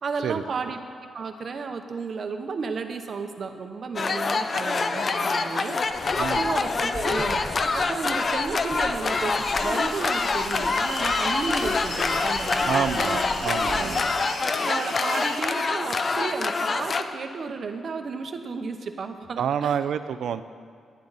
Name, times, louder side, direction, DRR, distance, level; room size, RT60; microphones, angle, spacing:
voice 1, 0.0-0.8 1.1-5.8 6.2-7.4 7.7-13.3 13.8-13.9 14.7-19.9, right 4 dB, 45° right, 6 dB, 0.9 m, -33 dB
sound 1, 4.0-17.0, left 4 dB, 35° left, 0.5 m, -26 dB
Car, 5.9-14.0, left 1 dB, 15° left, 1.5 m, -40 dB
voice 2, 6.2-6.5 12.7-14.3 19.4-20.4, right 8 dB, 80° right, 11 dB, 0.5 m, -28 dB
sound 2, 9.3-15.4, left 2 dB, 70° left, 2.2 m, -36 dB
17.5 x 10.0 x 4.1 m, 2.1 s
wide cardioid pair, 150°, 0 cm